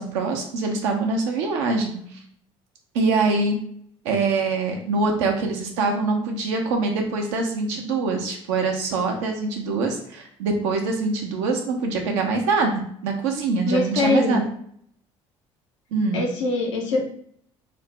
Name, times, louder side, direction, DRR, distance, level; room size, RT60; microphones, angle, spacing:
voice 1, 0.0-2.0 2.9-3.6 4.0-14.4 15.9-16.3, right 3 dB, 75° right, 3 dB, 0.7 m, -24 dB
voice 2, 13.6-14.4 16.1-17.1, left 3 dB, 85° left, 0 dB, 0.7 m, -23 dB
3.2 x 2.1 x 3.2 m, 0.64 s
hypercardioid pair, 60°, 15 cm